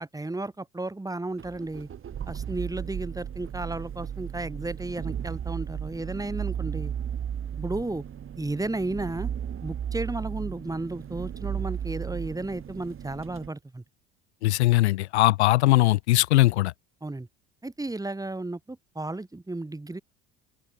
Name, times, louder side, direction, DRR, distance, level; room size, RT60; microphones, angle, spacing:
voice 1, 0.0-1.9 2.3-6.9 7.6-8.0 8.4-9.3 9.6-13.8 17.0-17.3 17.6-20.0, right 2 dB, 10° right, 3.8 m, -33 dB
sound 1, 1.4-13.5, right 8 dB, 35° right, 4.7 m, -35 dB
voice 2, 14.4-16.7, left 18 dB, 75° left, 1.6 m, -20 dB
open air
hypercardioid pair, 70°, 34 cm